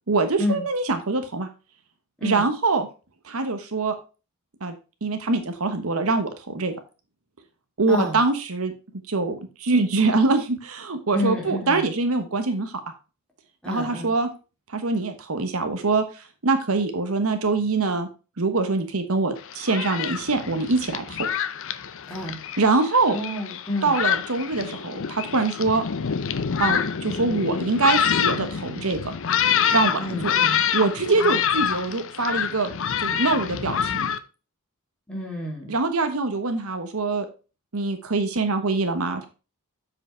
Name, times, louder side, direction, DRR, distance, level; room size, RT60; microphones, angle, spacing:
voice 1, 0.1-1.5 2.2-2.9 3.2-3.9 4.6-4.7 5.0-6.7 7.8-8.7 9.1-12.7 13.7-14.3 14.7-16.0 16.4-18.1 18.4-21.3 22.6-23.2 23.8-25.8 26.6-29.1 29.7-30.3 30.7-32.7 33.0-34.1 35.7-37.3 37.7-39.3, right 3 dB, 75° right, 7 dB, 1.1 m, -24 dB
voice 2, 7.9-8.2 11.1-11.9 13.6-14.1 22.1-22.4 23.1-24.0 29.9-30.6 31.1-31.4 35.1-35.7, left 1 dB, 5° left, -2 dB, 2.6 m, -29 dB
Thunderstorm, 19.4-34.2, left 8 dB, 60° left, 0.6 m, -26 dB
7.5 x 4.9 x 4.4 m, 0.32 s
head